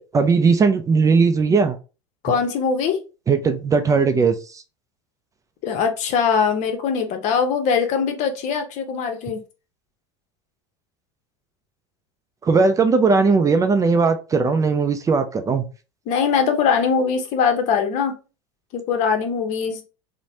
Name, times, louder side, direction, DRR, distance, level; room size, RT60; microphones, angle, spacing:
voice 1, 0.1-1.8 3.3-4.6 12.4-15.6, right 4 dB, 20° right, 0.4 m, -18 dB
voice 2, 2.2-3.0 5.6-9.4 16.1-18.1 18.7-19.8, left 6 dB, 55° left, 0.8 m, -21 dB
3.1 x 2.1 x 2.7 m
hypercardioid pair, 90°, 15 cm